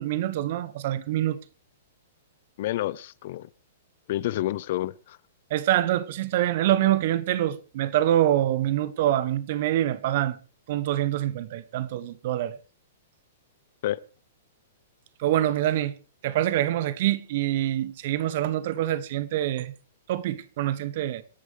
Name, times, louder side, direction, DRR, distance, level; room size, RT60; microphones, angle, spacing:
voice 1, 0.0-1.4 5.5-10.4 10.7-12.6 15.2-15.9 16.2-19.7 20.1-21.2, right 13 dB, 50° right, 1.3 m, -25 dB
voice 2, 2.6-3.5 4.1-5.2 13.8-14.0, left 14 dB, 50° left, 0.7 m, -29 dB
26.5 x 11.0 x 3.4 m
figure-of-eight pair, 110°, 0 cm